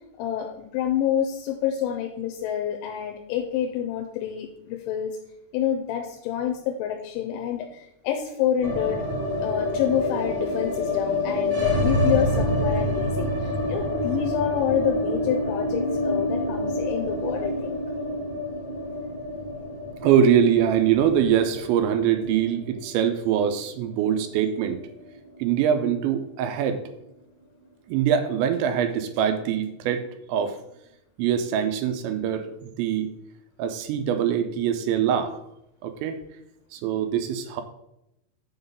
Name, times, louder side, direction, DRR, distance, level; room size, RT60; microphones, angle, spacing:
voice 1, 0.2-5.2 5.5-17.8, left 9 dB, 85° left, 3 dB, 3.1 m, -28 dB
sound 1, 8.6-24.7 25.0-25.1 25.4-26.1, left 1 dB, 50° right, 1.5 m, -27 dB
voice 2, 20.0-24.8 25.4-26.8 27.9-30.6 31.2-33.1 33.6-35.4 35.8-36.2 36.7-37.6, right 8 dB, 85° right, 7 dB, 2.9 m, -23 dB
7.8 x 4.0 x 6.8 m, 0.82 s
omnidirectional pair, 5.3 m